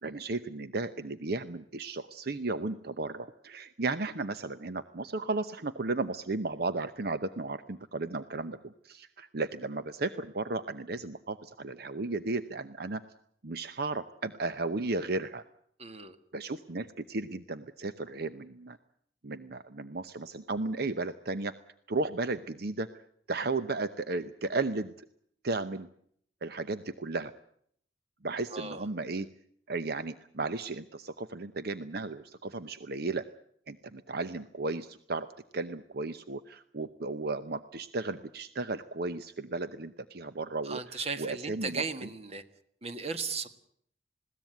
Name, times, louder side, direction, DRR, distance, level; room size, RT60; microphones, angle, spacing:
voice 1, 0.0-13.0 13.4-15.4 16.3-18.8 19.2-21.5 21.9-23.0 23.3-24.9 25.4-25.9 26.4-27.3 28.2-29.3 29.7-33.3 33.7-35.3 35.5-41.8, right 3 dB, 60° right, 12 dB, 0.9 m, -34 dB
voice 2, 15.8-16.2 28.5-28.9 40.6-42.4 42.8-43.5, right 4 dB, 35° right, 10 dB, 1.7 m, -36 dB
21.0 x 17.0 x 9.2 m, 0.66 s
head